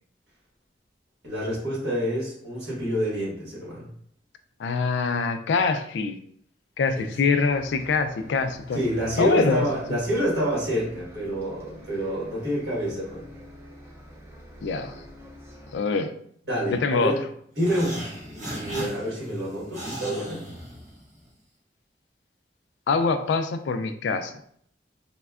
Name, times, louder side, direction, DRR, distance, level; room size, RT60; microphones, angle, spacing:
voice 1, 1.2-3.9 6.9-7.1 8.7-13.3 16.5-17.2 17.6-20.4, equal, 65° right, -5 dB, 1.5 m, -28 dB
voice 2, 4.6-6.2 6.8-8.8 9.2-10.0 14.6-14.9 15.7-16.1 16.7-17.2 22.9-24.3, left 4 dB, 75° left, 9 dB, 0.3 m, -24 dB
Bus, 7.5-15.8, right 1 dB, 15° right, 0.5 m, -47 dB
sound 1, 17.5-21.3, equal, 45° right, 1.2 m, -37 dB
4.1 x 2.2 x 2.3 m, 0.64 s
head